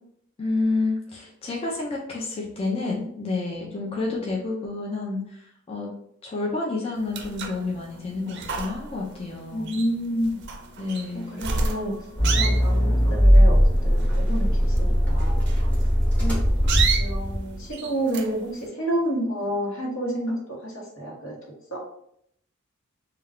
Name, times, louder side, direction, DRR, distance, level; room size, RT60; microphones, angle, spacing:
voice 1, 0.4-5.9 6.2-10.0 10.8-11.4, left 3 dB, 30° left, -2 dB, 0.4 m, -29 dB
sound 1, 7.0-18.7, right 4 dB, 55° right, 0.4 m, -32 dB
voice 2, 9.5-10.4 11.1-11.9 12.4-15.6 16.2-16.4 17.0-21.4 21.7-21.8, right 1 dB, 70° left, -2 dB, 1.0 m, -29 dB
Accelerating revving vroom, 12.2-17.6, equal, 10° left, 0.9 m, -19 dB
2.3 x 2.2 x 3.4 m, 0.71 s
head